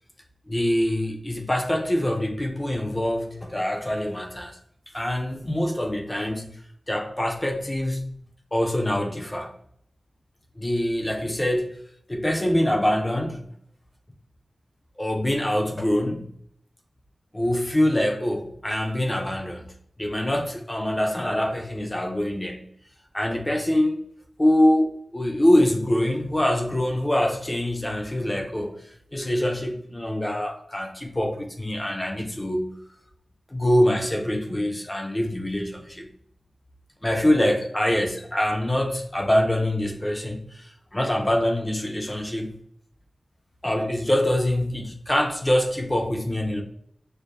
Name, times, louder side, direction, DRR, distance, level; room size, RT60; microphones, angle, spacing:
voice 1, 0.5-4.6 4.9-6.6 6.9-8.1 8.5-9.5 10.6-11.8 12.1-13.5 15.0-16.3 17.3-19.7 20.0-22.7 23.1-24.0 24.4-28.8 29.1-32.8 33.5-36.1 37.0-42.5 43.6-46.6, left 1 dB, 20° left, 0.6 m, -24 dB
6.4 x 2.2 x 2.6 m
wide cardioid pair, 100°, 0 cm